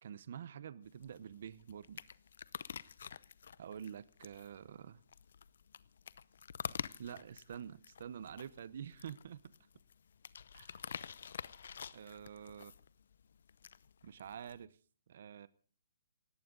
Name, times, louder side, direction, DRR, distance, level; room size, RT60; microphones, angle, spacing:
voice 1, 0.0-2.0 3.6-5.0 7.0-9.5 10.5-10.7 11.9-12.7 14.0-14.7 15.1-15.5, right 8 dB, 45° right, 0.8 m, -47 dB
sound 1, 0.8-14.6, left 7 dB, 60° left, 0.7 m, -49 dB
19.0 x 17.0 x 3.8 m
hypercardioid pair, 175°, 0 cm